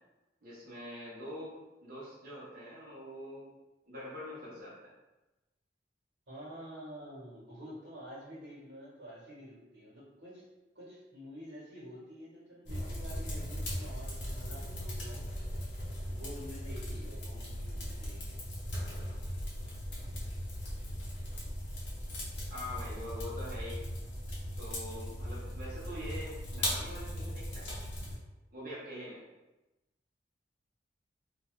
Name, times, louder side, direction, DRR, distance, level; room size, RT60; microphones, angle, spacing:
voice 1, 0.4-3.5 3.9-4.9 22.5-23.8 24.6-27.7 28.5-29.2, left 1 dB, 50° right, -7 dB, 1.0 m, -44 dB
voice 2, 6.3-10.4 10.7-15.5 15.7-18.4, equal, 75° right, -6 dB, 1.2 m, -49 dB
sound 1, 12.7-28.2, equal, 70° left, 0.8 m, -38 dB
2.6 x 2.4 x 3.1 m, 1.0 s
head